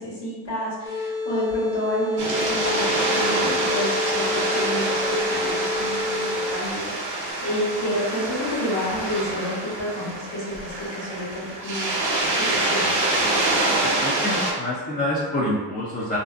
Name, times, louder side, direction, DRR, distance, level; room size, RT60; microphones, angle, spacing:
voice 1, 0.0-11.9 12.5-13.0, equal, 60° left, -7 dB, 1.3 m, -29 dB
sound 1, 0.8-6.8, left 3 dB, 80° left, 1.0 m, -29 dB
sound 2, 2.2-14.5, right 2 dB, 40° right, 0.8 m, -26 dB
voice 2, 13.8-16.2, left 1 dB, 20° left, -7 dB, 0.5 m, -27 dB
2.6 x 2.3 x 2.4 m, 1.3 s
cardioid pair, 70°, 48 cm